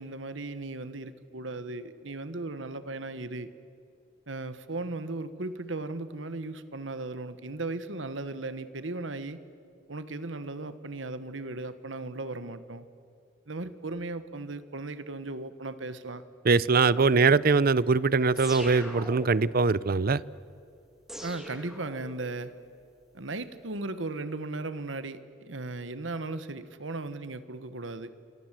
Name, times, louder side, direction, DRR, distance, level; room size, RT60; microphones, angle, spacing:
voice 1, 0.0-3.5 4.3-9.4 9.9-12.9 13.5-16.2 17.0-17.1 21.2-22.5 23.1-28.1, right 2 dB, 90° right, 1.4 m, -37 dB
voice 2, 16.5-20.2, right 4 dB, 50° right, 0.6 m, -22 dB
sound 1, 18.4-19.6 21.1-22.4, equal, 5° right, 3.1 m, -41 dB
29.0 x 25.5 x 7.6 m
head